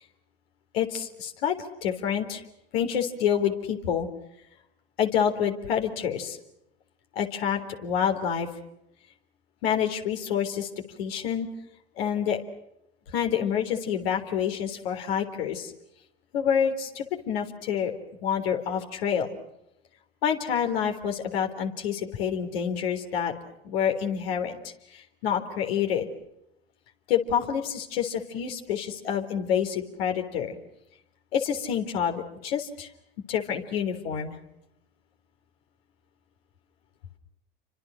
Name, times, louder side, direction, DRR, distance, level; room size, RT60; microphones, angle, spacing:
voice 1, 0.7-2.4 2.7-4.1 5.0-6.4 7.2-8.5 9.6-10.7 11.0-11.5 12.0-12.4 13.1-15.7 16.3-17.9 18.2-19.3 20.2-23.3 23.6-24.6 24.9-26.1 27.1-30.6 31.3-32.9 33.3-34.3, left 8 dB, 75° left, 4 dB, 3.8 m, -27 dB
29.5 x 25.5 x 6.4 m, 0.82 s
hypercardioid pair, 70°, 31 cm